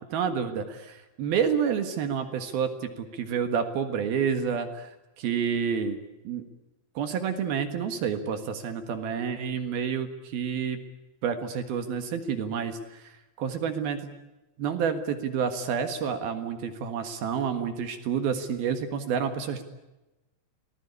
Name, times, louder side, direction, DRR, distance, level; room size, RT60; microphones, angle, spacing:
voice 1, 0.1-6.0 6.2-6.4 7.0-10.8 11.2-14.1 14.6-19.6, right 7 dB, 65° right, 8 dB, 3.3 m, -29 dB
26.0 x 19.5 x 9.8 m, 1.0 s
omnidirectional pair, 4.8 m